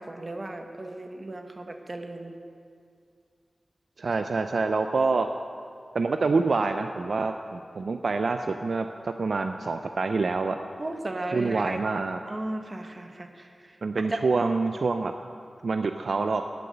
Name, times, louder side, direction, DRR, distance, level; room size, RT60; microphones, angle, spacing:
voice 1, 0.0-2.3 10.8-11.8 12.3-14.2, right 2 dB, 35° right, 5 dB, 1.1 m, -35 dB
voice 2, 4.0-5.3 5.9-10.6 11.3-12.2 13.8-15.1 15.6-16.4, right 4 dB, 70° right, 7 dB, 0.4 m, -26 dB
9.9 x 9.4 x 7.8 m, 2.3 s
wide cardioid pair, 90°, 0 cm